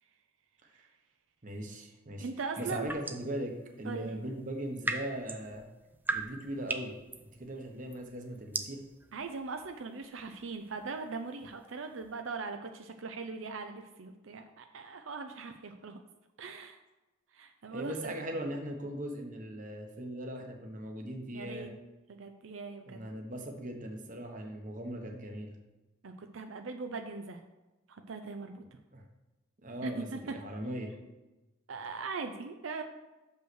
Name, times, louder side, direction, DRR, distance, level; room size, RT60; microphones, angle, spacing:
voice 1, 1.4-2.3 2.6-5.7 6.1-6.9 7.3-8.8 17.7-21.7 22.9-25.5 28.9-29.0 29.6-30.9, right 1 dB, 40° right, 3 dB, 1.2 m, -39 dB
voice 2, 2.2-2.9 3.8-4.1 9.1-16.0 16.4-16.8 17.3-18.1 21.3-21.7 22.1-23.0 26.0-27.4 27.9-28.6 29.8-30.2 31.7-32.8, right 4 dB, 85° right, 6 dB, 0.6 m, -40 dB
sound 1, 2.6-3.4 4.5-12.2, right 2 dB, 10° right, 0.4 m, -40 dB
6.5 x 5.6 x 6.2 m, 1.1 s
head